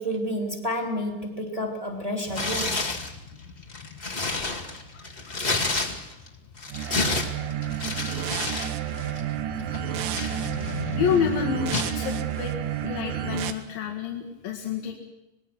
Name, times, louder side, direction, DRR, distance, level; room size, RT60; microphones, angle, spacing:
voice 1, 0.0-2.9, equal, 10° right, 3 dB, 2.4 m, -30 dB
Motorcycle, 2.3-12.0, left 7 dB, 65° left, 2.2 m, -41 dB
Tearing, 2.3-3.1 3.6-6.3 6.6-8.7 9.0-9.2 9.7-10.9 11.7-12.0, left 3 dB, 20° left, 1.3 m, -29 dB
voice 2, 5.3-5.7 11.0-12.5 12.8-15.0, left 7 dB, 85° left, 2 dB, 3.6 m, -29 dB
sound 1, 6.7-13.5, right 10 dB, 75° right, 2.7 m, -30 dB
26.0 x 19.5 x 6.1 m, 0.92 s
omnidirectional pair, 4.0 m